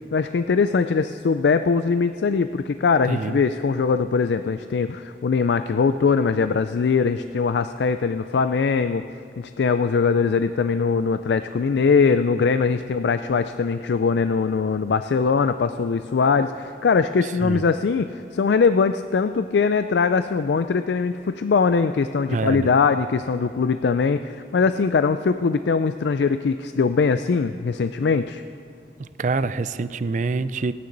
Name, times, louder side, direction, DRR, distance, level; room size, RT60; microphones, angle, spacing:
voice 1, 0.1-9.0 9.4-28.4, left 5 dB, 75° left, 10 dB, 0.4 m, -21 dB
voice 2, 3.1-3.4 17.4-17.6 22.3-22.7 29.0-30.7, right 3 dB, 45° right, 14 dB, 0.4 m, -26 dB
28.0 x 9.6 x 4.0 m, 2.5 s
head